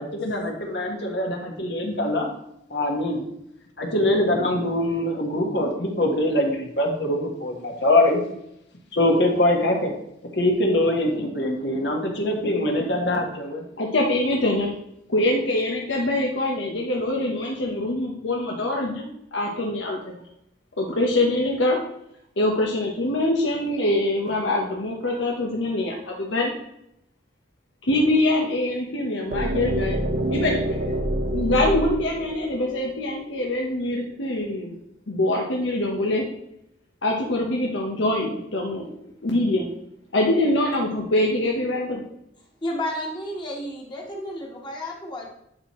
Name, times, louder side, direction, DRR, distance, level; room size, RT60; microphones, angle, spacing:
voice 1, 0.0-2.3 2.7-3.2 3.8-8.2 8.9-9.9 10.3-13.6, left 1 dB, 65° left, 1 dB, 1.5 m, -23 dB
voice 2, 13.8-14.7 15.1-20.0 20.8-21.8 22.4-26.5 27.8-30.0 30.3-30.6 31.3-34.7 35.1-36.3 37.0-38.9 39.2-39.6 40.1-42.0, left 1 dB, 90° left, -1 dB, 1.1 m, -24 dB
sound 1, 29.3-33.2, right 1 dB, 65° right, 1.0 m, -27 dB
voice 3, 42.6-45.3, left 1 dB, 25° left, -2 dB, 1.5 m, -31 dB
11.0 x 4.4 x 3.1 m, 0.78 s
head